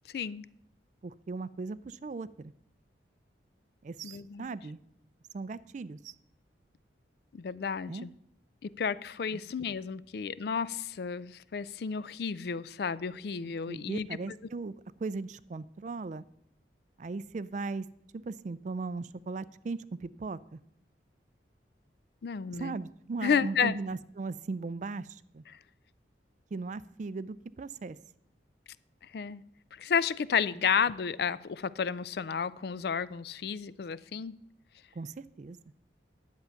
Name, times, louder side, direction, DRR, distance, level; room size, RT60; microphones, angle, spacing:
voice 1, 0.1-0.5 4.0-4.5 7.3-8.1 8.6-14.1 22.2-22.7 23.2-23.7 29.0-29.4 29.7-34.4, left 6 dB, 55° left, 0.4 m, -32 dB
voice 2, 1.0-2.5 3.8-4.8 5.3-6.1 7.9-8.1 13.7-14.7 15.0-16.2 17.0-17.9 18.2-20.6 22.5-25.4 26.5-28.0 34.9-35.6, right 3 dB, 40° right, 0.3 m, -38 dB
10.5 x 7.9 x 5.7 m
head